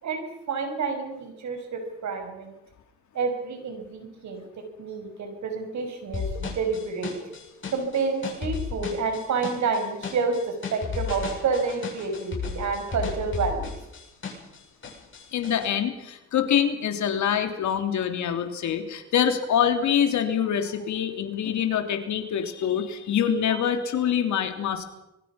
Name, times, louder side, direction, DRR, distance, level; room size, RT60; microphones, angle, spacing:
voice 1, 0.0-2.5 3.1-4.4 4.8-7.1 7.7-13.7 23.5-23.6, right 4 dB, 70° right, 6 dB, 5.5 m, -29 dB
sound 1, 6.1-14.6 14.8-15.7, left 5 dB, 40° left, 7.9 m, -33 dB
voice 2, 15.3-24.8, left 8 dB, 70° left, 6 dB, 3.2 m, -25 dB
25.5 x 22.0 x 5.9 m, 0.88 s
cardioid pair, 90°, 30 cm